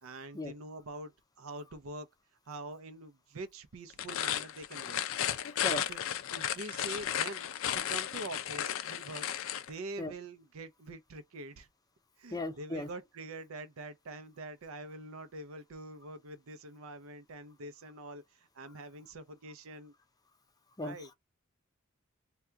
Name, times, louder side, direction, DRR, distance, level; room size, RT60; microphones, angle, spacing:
voice 1, 0.0-2.1 2.5-5.0 5.7-6.0 6.3-9.3 9.7-11.7 12.2-19.9 20.8-21.1, right 2 dB, 75° right, 0.6 m, -45 dB
sound 1, 3.9-9.7, left 10 dB, 70° left, 0.4 m, -34 dB
voice 2, 12.3-12.9 20.8-21.1, left 2 dB, 20° left, 0.5 m, -37 dB
2.7 x 2.3 x 3.3 m
head